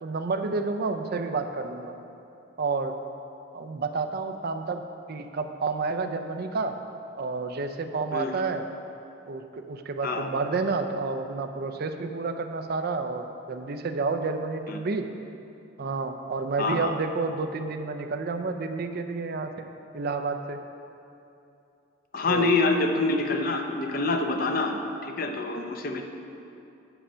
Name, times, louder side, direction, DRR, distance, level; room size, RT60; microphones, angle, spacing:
voice 1, 0.0-1.9 2.6-3.0 3.5-4.8 5.1-6.8 7.2-8.6 9.3-15.1 15.8-19.5 19.9-20.6 22.3-22.5, right 4 dB, 55° right, 6 dB, 0.5 m, -30 dB
voice 2, 16.6-16.9 22.1-26.0, left 3 dB, 50° left, 4 dB, 0.7 m, -26 dB
9.0 x 5.6 x 5.6 m, 2.7 s
head